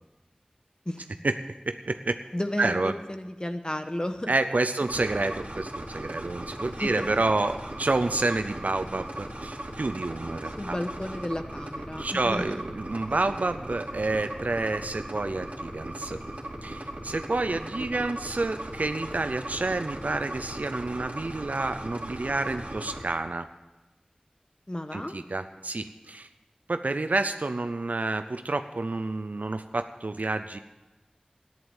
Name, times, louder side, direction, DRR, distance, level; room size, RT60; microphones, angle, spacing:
voice 1, 1.7-2.2 2.6-2.9 4.3-10.8 12.0-16.2 16.6-23.5 24.9-26.3 26.7-30.6, right 2 dB, 90° right, 9 dB, 0.5 m, -29 dB
voice 2, 2.3-4.3 6.7-7.1 10.6-12.4 17.4-17.6 17.9-18.1 24.7-25.2, left 1 dB, 35° left, 7 dB, 1.2 m, -33 dB
sound 1, 4.9-23.0, right 1 dB, 65° right, 2.6 m, -38 dB
14.0 x 10.5 x 7.1 m, 1.1 s
wide cardioid pair, 40°, 3 cm